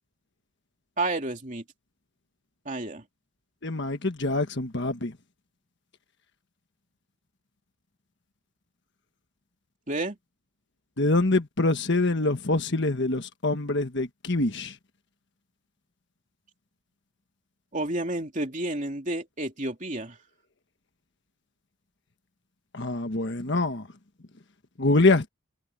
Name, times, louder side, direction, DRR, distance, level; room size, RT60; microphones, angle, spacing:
voice 1, 1.0-1.6 2.6-3.1 9.9-10.2 17.7-20.2, right 2 dB, 35° right, 3.0 m, -30 dB
voice 2, 3.6-5.1 11.0-14.7 22.7-23.9 24.8-25.3, left 2 dB, 55° left, 1.4 m, -25 dB
head